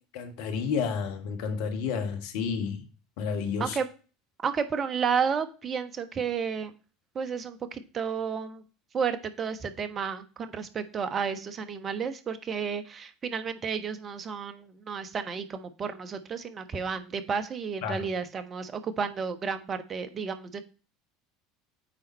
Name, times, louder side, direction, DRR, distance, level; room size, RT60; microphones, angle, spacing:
voice 1, 0.1-2.8 3.2-3.8 17.8-18.0, left 6 dB, 60° left, 1.4 m, -30 dB
voice 2, 4.4-6.7 7.1-8.6 8.9-20.6, right 6 dB, 35° right, 1.1 m, -32 dB
8.8 x 4.0 x 4.3 m
figure-of-eight pair, 70°, 0 cm